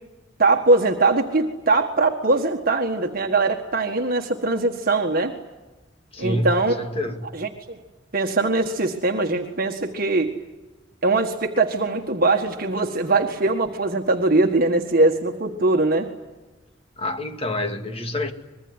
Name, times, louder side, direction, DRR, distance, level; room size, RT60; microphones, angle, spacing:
voice 1, 0.4-5.4 6.2-6.7 7.3-7.8 8.1-10.3 11.0-16.1, right 3 dB, 50° right, 1.7 m, -21 dB
voice 2, 6.1-7.3 17.0-18.3, left 1 dB, 30° left, 2.2 m, -27 dB
25.0 x 22.0 x 9.8 m
head